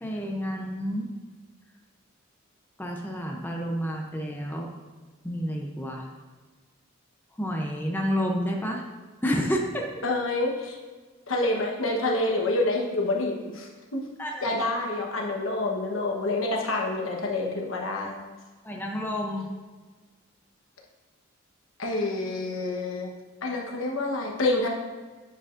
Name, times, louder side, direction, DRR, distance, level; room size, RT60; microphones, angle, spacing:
voice 1, 0.0-1.1 2.8-4.7 5.2-6.1 7.4-8.8 9.2-9.9 14.2-14.6 18.6-19.5, equal, 10° left, 0 dB, 0.6 m, -29 dB
voice 2, 10.0-10.8 11.3-14.0 14.4-18.2 21.8-23.1 23.4-24.7, left 2 dB, 70° left, 0 dB, 1.1 m, -27 dB
9.6 x 5.1 x 2.5 m, 1.3 s
head